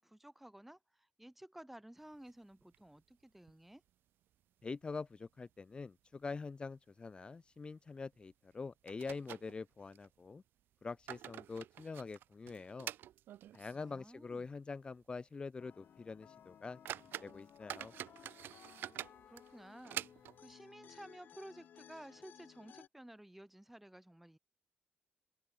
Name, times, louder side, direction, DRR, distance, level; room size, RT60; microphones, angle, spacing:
voice 1, 0.0-3.8 13.7-14.6 19.3-24.4, right 1 dB, 5° right, 5.2 m, -54 dB
sound 1, 2.1-3.1 3.4-3.5 3.9-4.0 4.6-5.1 5.4-5.5 6.1-6.3 6.6-6.8 8.1-8.2 8.9-10.1 10.7-13.9 14.3-14.4 14.9-15.0 15.5-15.6 16.2-16.3 16.6-20.5, right 12 dB, 85° right, 4.0 m, -47 dB
voice 2, 4.6-10.4 10.8-12.9 13.5-16.8 17.2-17.9, left 4 dB, 30° left, 3.2 m, -45 dB
sound 2, 15.6-22.9, left 9 dB, 60° left, 3.1 m, -59 dB
cardioid pair, 115°, 3 cm